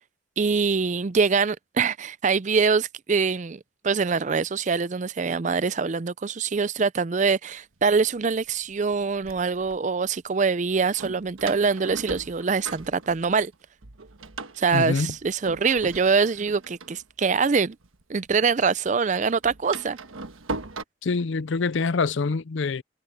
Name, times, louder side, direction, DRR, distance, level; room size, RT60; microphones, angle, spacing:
voice 1, 0.4-13.5 14.6-17.8 18.1-20.0, right 5 dB, 35° right, 0.4 m, -24 dB
Door, 7.8-7.9 8.7-9.8 11.0-13.5 13.8-18.3 18.6-20.8, right 3 dB, 85° right, 1.3 m, -39 dB
voice 2, 14.7-15.1 21.0-22.8, left 4 dB, 65° left, 0.5 m, -25 dB
head